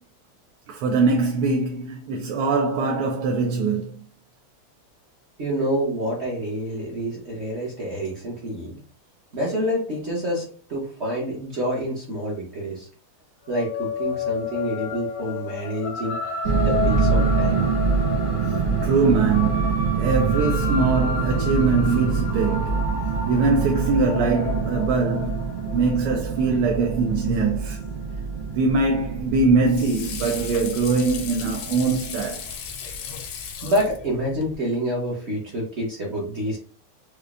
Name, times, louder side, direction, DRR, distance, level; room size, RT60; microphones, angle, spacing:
voice 1, 0.7-4.0 18.4-22.9 23.3-27.8 28.5-32.4, right 4 dB, 85° right, 1.5 m, -22 dB
voice 2, 5.4-8.7 9.3-12.9 13.5-16.2 16.6-17.7 33.6-36.6, equal, 50° right, 0.8 m, -27 dB
sound 1, 13.5-28.2, left 5 dB, 55° left, 0.8 m, -32 dB
sound 2, 16.4-32.3, right 5 dB, 70° right, 1.1 m, -25 dB
Water / Sink (filling or washing), 29.1-34.6, left 6 dB, 75° left, 1.3 m, -36 dB
4.9 x 2.2 x 2.4 m
omnidirectional pair, 2.4 m